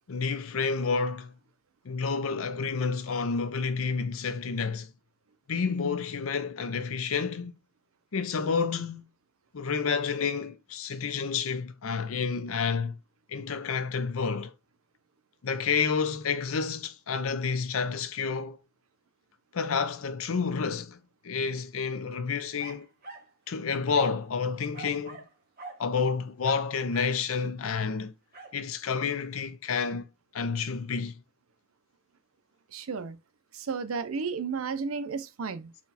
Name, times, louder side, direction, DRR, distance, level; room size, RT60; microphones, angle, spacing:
voice 1, 0.1-1.3 1.8-4.9 5.5-7.6 8.1-9.1 9.5-13.0 13.3-14.5 15.4-18.6 19.5-21.0 21.2-22.9 23.5-25.2 25.8-28.1 28.5-30.1 30.3-31.2, left 5 dB, 85° left, 0.6 m, -29 dB
sound 1, 22.6-23.3 23.9-24.3 24.7-25.3 25.6-25.8 26.4-27.2 28.3-28.6, right 3 dB, 45° right, 1.5 m, -44 dB
voice 2, 32.7-33.2 33.5-35.7, right 5 dB, 90° right, 0.6 m, -33 dB
4.2 x 2.3 x 4.1 m
head